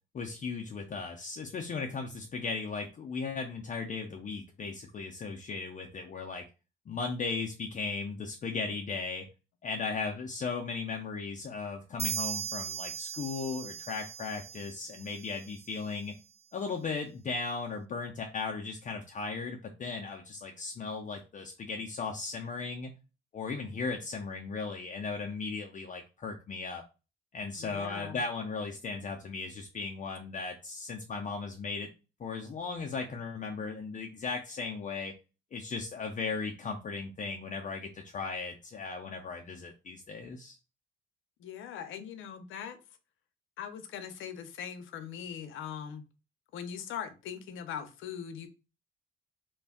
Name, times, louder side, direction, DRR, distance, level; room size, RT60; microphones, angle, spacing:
voice 1, 0.1-6.4 6.9-9.3 9.6-16.1 16.5-22.9 23.3-26.8 27.3-31.9 32.2-35.1 35.5-40.6, left 4 dB, 40° left, 0.5 m, -37 dB
sound 1, 12.0-15.6, right 7 dB, 35° right, 0.3 m, -38 dB
voice 2, 27.6-28.2 41.4-42.8 43.6-46.0 46.5-48.5, left 8 dB, 80° left, 0.6 m, -41 dB
2.5 x 2.2 x 3.5 m
cardioid pair, 90°, 20 cm